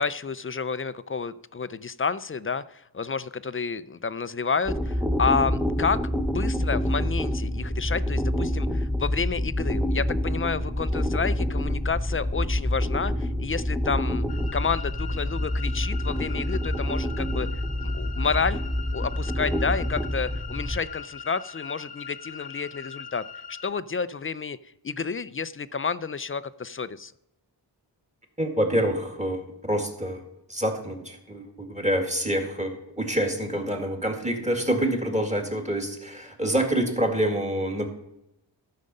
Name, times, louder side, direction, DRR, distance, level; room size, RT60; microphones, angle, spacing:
voice 1, 0.0-14.2 14.5-17.5 17.8-18.6 18.9-24.6 24.8-27.1, left 5 dB, 30° left, 15 dB, 0.4 m, -30 dB
sound 1, 4.7-20.8, left 1 dB, ahead, 0.7 m, -27 dB
sound 2, 14.3-23.7, left 6 dB, 60° left, 0.9 m, -41 dB
voice 2, 28.4-30.2 30.5-37.9, right 1 dB, 15° right, 3 dB, 1.9 m, -27 dB
13.5 x 6.5 x 5.3 m, 0.85 s
wide cardioid pair, 90°, 43 cm